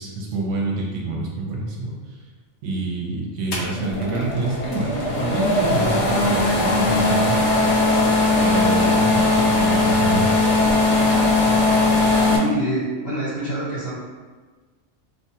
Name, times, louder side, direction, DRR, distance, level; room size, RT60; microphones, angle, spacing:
voice 1, 0.0-2.2 2.6-7.4 8.4-10.6, right 2 dB, 70° right, -2 dB, 1.0 m, -27 dB
sound 1, 3.5-12.4, left 2 dB, 75° left, 0.4 m, -19 dB
voice 2, 12.2-13.9, right 1 dB, 50° left, -14 dB, 1.9 m, -26 dB
3.1 x 2.2 x 2.8 m, 1.4 s
omnidirectional pair, 1.4 m